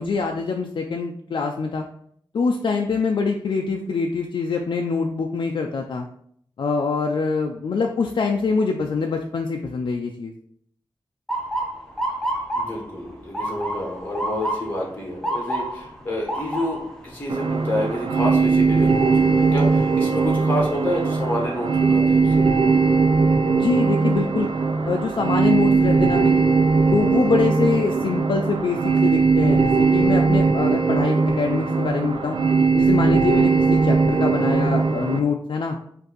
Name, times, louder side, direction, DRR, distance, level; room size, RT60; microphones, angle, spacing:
voice 1, 0.0-1.8 2.3-6.1 6.6-10.3 23.4-24.5 24.9-26.5 26.9-32.4 32.8-35.8, left 4 dB, 70° left, 2 dB, 0.4 m, -24 dB
Motor vehicle (road) / Siren, 11.3-23.2 23.6-24.1 24.9-25.2 27.0-27.3 27.8-27.9 28.3-29.0, right 1 dB, 5° left, 0.9 m, -32 dB
voice 2, 12.5-22.4, left 1 dB, 20° left, -2 dB, 1.2 m, -29 dB
sound 1, 17.3-35.2, right 4 dB, 75° right, 0.5 m, -19 dB
5.1 x 2.6 x 4.0 m, 0.65 s
wide cardioid pair, 115°, 8 cm